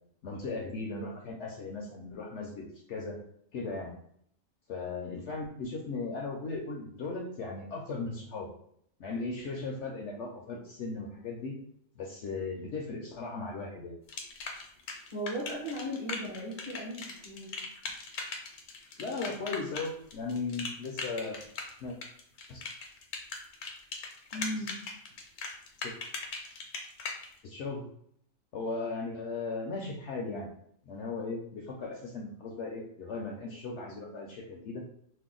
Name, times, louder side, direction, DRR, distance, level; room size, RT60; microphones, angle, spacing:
voice 1, 0.2-3.2 3.5-3.9 4.7-8.5 9.0-11.6 12.0-13.9 19.0-21.4 21.8-22.0 22.5-22.6 25.8-25.9 27.4-27.9 28.5-30.5 30.8-34.8, left 3 dB, 65° left, 0 dB, 0.7 m, -37 dB
sound 1, 14.1-27.3, left 4 dB, 90° left, 1.1 m, -39 dB
voice 2, 15.1-17.6 24.3-24.7, equal, 30° right, -6 dB, 0.7 m, -37 dB
2.7 x 2.1 x 3.7 m, 0.68 s
omnidirectional pair, 1.5 m